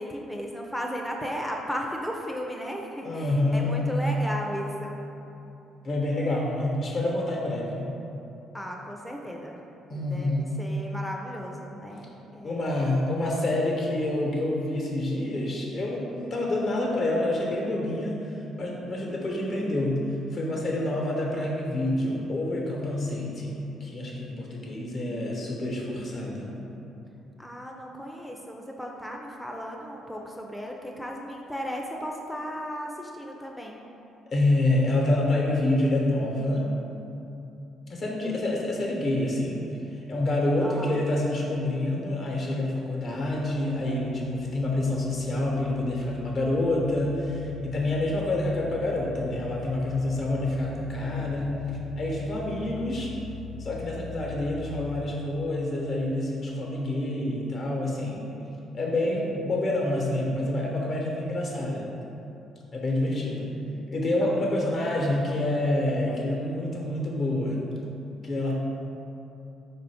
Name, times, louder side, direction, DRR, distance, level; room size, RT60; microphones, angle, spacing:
voice 1, 0.0-5.0 8.5-9.6 9.9-10.3 10.6-12.8 13.2-13.4 27.4-33.8 40.6-41.0 64.2-65.0 66.1-66.2, equal, 5° left, 0 dB, 0.4 m, -36 dB
voice 2, 3.0-3.7 4.0-4.1 5.8-7.9 9.9-10.5 12.4-18.2 18.6-20.0 20.3-26.6 34.3-36.7 37.9-39.6 40.1-51.6 52.0-53.1 53.6-58.2 58.7-61.9 62.7-63.5 63.9-67.6 68.2-68.5, left 1 dB, 55° left, -2 dB, 1.0 m, -27 dB
sound 1, 43.5-55.0, left 5 dB, 80° left, 0.9 m, -43 dB
4.3 x 2.5 x 4.8 m, 2.9 s
supercardioid pair, 75°, 0 cm